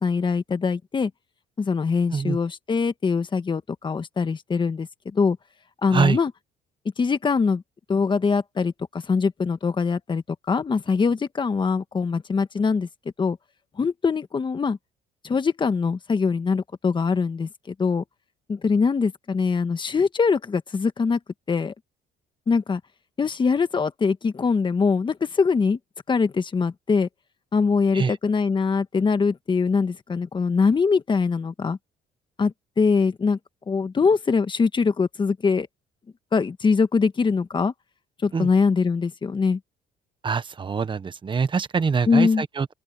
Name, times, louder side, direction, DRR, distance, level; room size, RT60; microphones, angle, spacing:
voice 1, 0.0-1.1 1.6-5.4 5.8-6.3 7.0-7.6 7.9-12.9 13.2-13.4 13.8-14.8 15.2-18.0 18.5-21.2 21.5-21.7 22.5-22.8 23.2-25.8 26.1-27.1 27.5-31.8 32.4-33.4 33.7-35.7 36.3-37.7 38.2-39.6 42.1-42.4, left 5 dB, 30° left, 1.5 m, -23 dB
voice 2, 40.2-42.7, right 5 dB, 30° right, 1.3 m, -24 dB
open air
cardioid pair, 110°, 17 cm